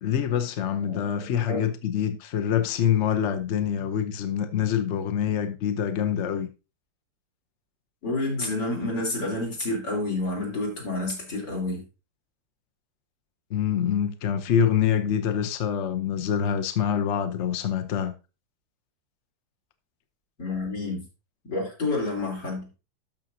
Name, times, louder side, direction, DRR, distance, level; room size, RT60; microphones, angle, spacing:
voice 1, 0.0-6.5 13.5-18.1, left 8 dB, 50° left, 0.9 m, -25 dB
voice 2, 8.0-11.8 20.4-21.0 21.5-22.7, left 2 dB, 80° left, 4.2 m, -29 dB
12.5 x 6.1 x 2.7 m
omnidirectional pair, 1.8 m